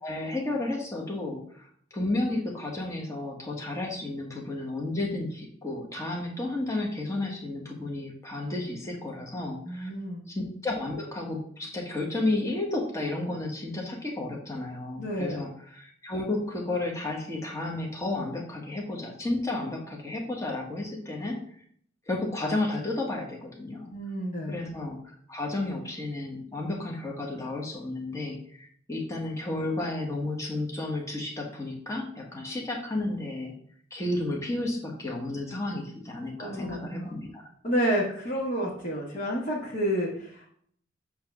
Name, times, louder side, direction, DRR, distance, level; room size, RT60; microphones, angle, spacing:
voice 1, 0.0-9.9 10.3-21.4 22.1-23.9 24.5-33.5 33.9-37.4, left 2 dB, 15° left, -1 dB, 1.2 m, -32 dB
voice 2, 9.7-10.2 15.0-15.4 23.9-24.5 36.4-37.1 37.6-40.5, equal, 40° left, -4 dB, 1.3 m, -30 dB
8.5 x 2.9 x 5.9 m, 0.63 s
head